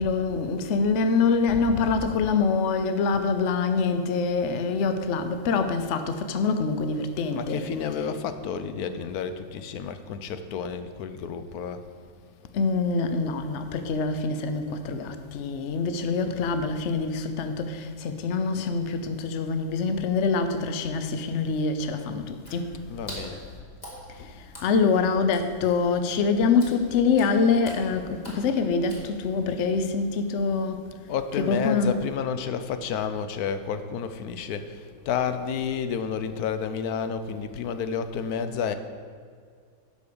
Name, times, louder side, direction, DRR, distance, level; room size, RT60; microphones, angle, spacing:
voice 1, 0.0-7.7 12.5-22.7 24.6-30.8 31.5-31.9, left 4 dB, 60° left, 0.9 m, -25 dB
voice 2, 1.5-2.2 7.3-11.8 22.9-23.4 31.1-38.7, left 7 dB, 90° left, 1.2 m, -31 dB
Water / Splash splatter, 22.4-29.6, equal, 30° left, 2.1 m, -45 dB
10.0 x 5.3 x 6.8 m
omnidirectional pair, 1.5 m